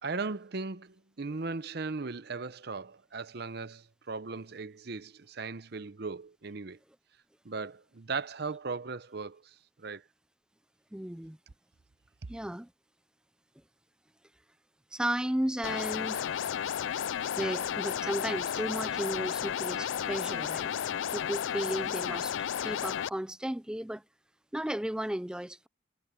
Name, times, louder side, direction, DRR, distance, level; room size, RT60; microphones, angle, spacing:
voice 1, 0.0-6.8 7.4-10.0, right 4 dB, 55° right, 0.7 m, -38 dB
voice 2, 10.9-11.4 12.3-12.7 14.9-16.4 17.4-20.7 21.1-24.0 24.5-25.7, right 1 dB, 5° right, 0.3 m, -34 dB
sound 1, 15.6-23.1, left 9 dB, 70° left, 0.3 m, -33 dB
head